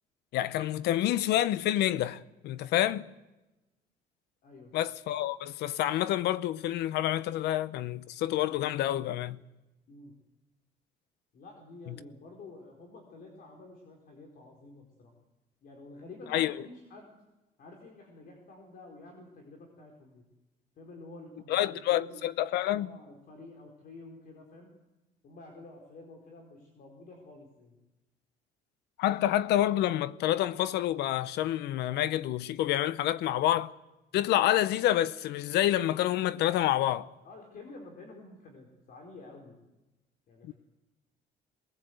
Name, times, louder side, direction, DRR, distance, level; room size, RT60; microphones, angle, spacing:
voice 1, 0.3-3.1 4.7-9.4 11.9-12.0 16.3-16.5 21.5-22.9 29.0-33.7 34.1-37.1 40.4-40.5, left 13 dB, 80° left, 0.8 m, -28 dB
voice 2, 4.4-4.7 9.9-10.1 11.3-15.1 15.6-17.2 17.6-20.2 20.8-22.3 22.7-24.8 25.2-27.7 37.2-39.6 40.3-40.5, left 2 dB, 60° left, 4.6 m, -50 dB
23.0 x 20.5 x 8.0 m
cardioid pair, 110°, 17 cm